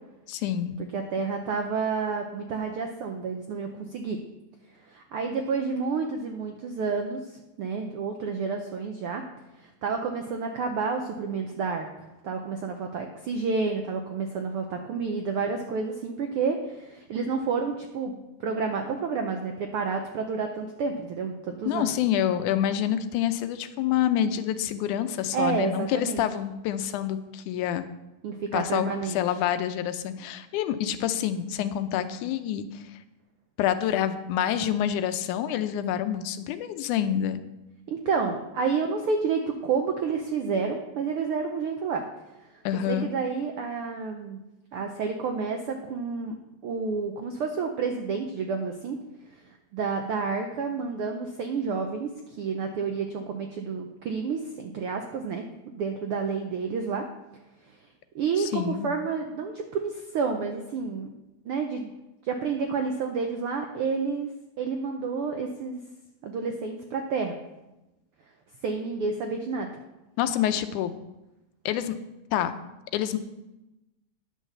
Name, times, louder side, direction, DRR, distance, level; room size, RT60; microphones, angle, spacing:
voice 1, 0.3-0.8 21.7-27.8 28.5-32.8 33.6-37.4 42.7-43.1 58.4-58.9 70.2-70.9 71.7-71.9 72.3-72.5 72.9-73.2, left 10 dB, 90° left, 10 dB, 2.1 m, -27 dB
voice 2, 0.9-4.2 4.9-9.2 9.6-21.9 25.3-26.2 28.2-29.2 37.9-42.0 42.9-44.4 44.7-46.4 46.6-49.0 49.3-49.4 49.7-57.0 58.1-61.1 61.4-61.9 62.2-64.3 64.6-65.8 66.2-67.3 68.6-69.7, right 5 dB, 80° right, 4 dB, 1.2 m, -30 dB
10.5 x 6.4 x 6.7 m, 0.98 s
omnidirectional pair, 3.5 m